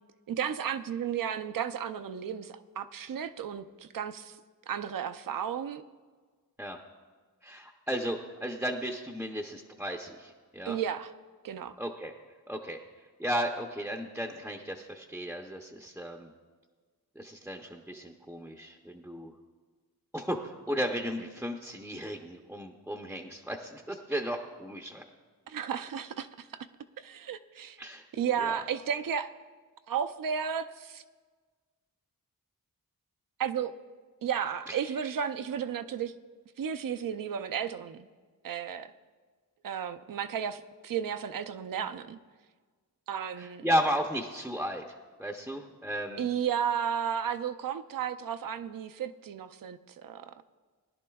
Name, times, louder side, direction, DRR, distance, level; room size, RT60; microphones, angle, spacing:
voice 1, 0.3-4.4 4.7-5.8 10.6-11.1 11.4-11.8 25.5-26.7 27.0-27.8 28.1-29.3 29.9-31.0 33.4-33.7 34.2-36.1 36.6-38.1 38.4-38.9 39.6-42.2 43.1-43.7 46.2-50.3, right 8 dB, 65° right, 10 dB, 0.6 m, -33 dB
voice 2, 7.4-10.8 11.8-12.1 12.5-12.8 13.2-16.3 17.2-19.3 20.1-25.0 27.8-28.0 28.4-28.6 34.7-34.8 43.4-44.8 45.2-46.3, equal, 5° right, 2 dB, 0.6 m, -34 dB
20.0 x 11.0 x 2.3 m, 1.4 s
wide cardioid pair, 110°, 36 cm